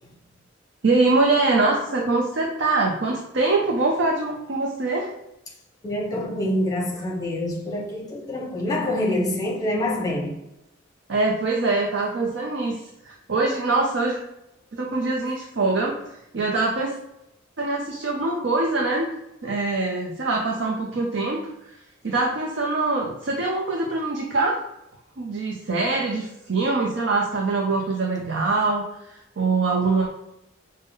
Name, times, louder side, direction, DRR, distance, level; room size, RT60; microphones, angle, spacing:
voice 1, 0.8-5.1 11.1-14.2 14.7-16.0 16.3-17.0 17.6-19.1 19.4-21.5 22.0-24.6 25.2-28.8 29.4-30.1, right 3 dB, 70° right, 0.6 m, -23 dB
voice 2, 5.8-10.4, left 1 dB, 20° left, 1.0 m, -26 dB
5.3 x 2.1 x 3.6 m
head